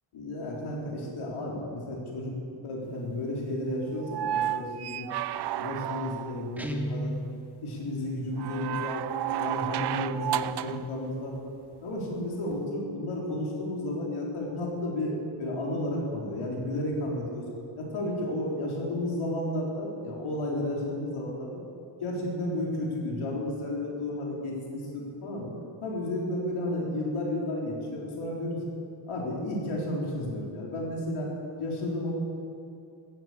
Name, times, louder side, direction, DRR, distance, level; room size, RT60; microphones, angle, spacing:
voice 1, 0.1-2.3 2.6-5.1 5.6-7.1 7.6-11.4 11.8-17.5 17.8-21.5 22.0-25.5 25.8-28.6 29.1-31.3 31.6-32.1, left 1 dB, 75° left, -3 dB, 4.1 m, -32 dB
sound 1, 4.0-6.5 8.4-10.9 12.5-12.6, right 11 dB, 55° right, 0.5 m, -32 dB
Guitar, 6.6-7.4, right 1 dB, 5° right, 0.9 m, -32 dB
15.0 x 11.0 x 8.6 m, 2.6 s
wide cardioid pair, 160°, 50 cm